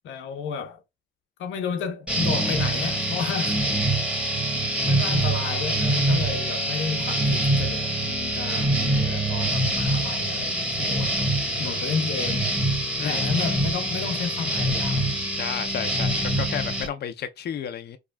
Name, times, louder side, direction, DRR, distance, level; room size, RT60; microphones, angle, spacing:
voice 1, 0.0-0.8 1.4-3.6 4.4-11.3 11.6-12.5 13.0-15.1, left 6 dB, 75° left, 1.0 m, -32 dB
sound 1, 2.1-16.9, right 1 dB, 5° right, 1.2 m, -25 dB
voice 2, 11.3-11.9 13.0-13.2 15.4-18.0, left 9 dB, 55° left, 0.6 m, -33 dB
4.8 x 2.4 x 2.3 m
cardioid pair, 90°, 20 cm